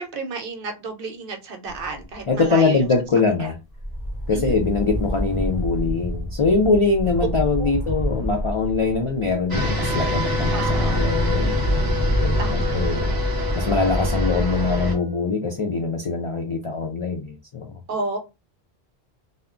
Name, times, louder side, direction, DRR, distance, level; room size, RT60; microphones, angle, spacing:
voice 1, 0.0-2.8 3.4-3.5 4.3-4.6 7.2-7.3 7.6-7.7 10.5-11.0 12.4-12.8 17.9-18.2, right 3 dB, 65° right, 5 dB, 0.8 m, -31 dB
sound 1, 1.7-2.4 2.8-3.0 3.7-9.5 9.9-14.6, equal, 25° left, 0.7 m, -28 dB
voice 2, 2.3-3.5 4.3-11.7 12.2-13.2 13.6-17.8, left 4 dB, 55° left, 1 dB, 0.3 m, -23 dB
sound 2, 9.5-14.9, equal, 25° right, 0.6 m, -24 dB
Wind instrument woodwind instrument, 10.9-15.3, left 11 dB, 70° left, 0.8 m, -33 dB
2.2 x 2.1 x 3.6 m, 0.26 s
omnidirectional pair, 1.1 m